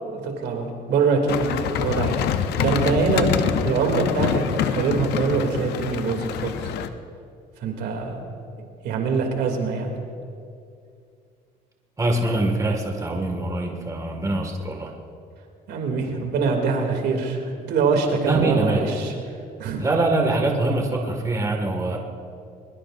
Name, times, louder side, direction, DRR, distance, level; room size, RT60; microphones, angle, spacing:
voice 1, 0.1-2.3 2.6-6.6 7.6-8.2 8.8-9.9 15.7-19.1 19.6-19.8, right 4 dB, 75° right, 2 dB, 2.8 m, -24 dB
sound 1, 1.3-6.9, left 9 dB, 80° left, 0.8 m, -26 dB
voice 2, 12.0-14.9 18.3-19.1 19.8-22.0, right 2 dB, 20° right, 2 dB, 1.9 m, -24 dB
22.5 x 22.0 x 2.6 m, 2.4 s
cardioid pair, 110°, 17 cm